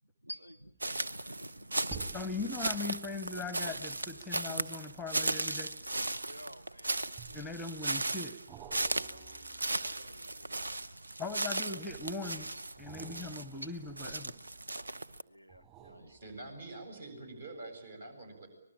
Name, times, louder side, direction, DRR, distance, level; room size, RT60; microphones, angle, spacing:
voice 1, 0.2-2.5 3.6-3.7 4.5-4.6 5.7-7.6 9.1-10.8 11.5-11.8 13.6-13.7 15.2-16.2, equal, 85° right, 9 dB, 1.1 m, -50 dB
sound 1, 0.6-1.0 1.8-6.5 7.2-7.8 8.5-11.5 12.7-14.8 15.5-16.9 17.4-17.5, right 7 dB, 20° right, 4.7 m, -53 dB
sound 2, 0.8-15.2, right 2 dB, 70° right, 0.9 m, -37 dB
voice 2, 2.1-5.7 7.3-8.4 11.2-12.5 12.8-14.3, left 3 dB, ahead, 14 dB, 0.9 m, -40 dB
voice 3, 16.1-18.5, right 2 dB, 55° right, 7 dB, 7.7 m, -46 dB
25.0 x 20.0 x 8.8 m, 0.86 s
figure-of-eight pair, 140°, 0 cm